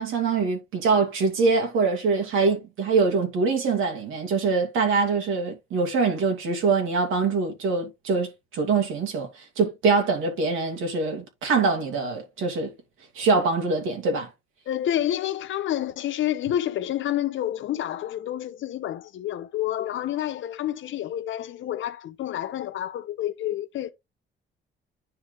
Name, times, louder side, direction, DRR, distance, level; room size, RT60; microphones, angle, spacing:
voice 1, 0.0-12.7 13.1-14.3, right 4 dB, 85° right, 2.8 m, -24 dB
voice 2, 14.7-23.9, left 12 dB, 75° left, 1.0 m, -29 dB
9.8 x 3.4 x 3.9 m
cardioid pair, 90°, 20 cm